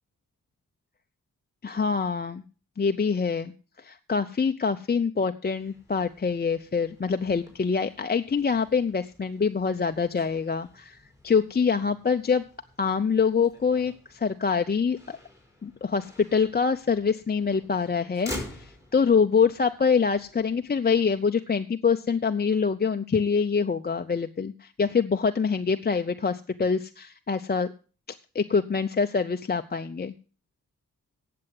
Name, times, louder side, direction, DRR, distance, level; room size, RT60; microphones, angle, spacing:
voice 1, 1.6-2.4 2.8-3.5 3.8-11.0 11.2-12.4 12.8-15.2 15.6-27.7 28.3-30.1, left 5 dB, 30° left, 7 dB, 0.6 m, -25 dB
Motor vehicle (road), 5.5-21.3, left 1 dB, 10° right, 5.4 m, -47 dB
9.5 x 7.7 x 7.6 m, 0.37 s
cardioid pair, 50°, 33 cm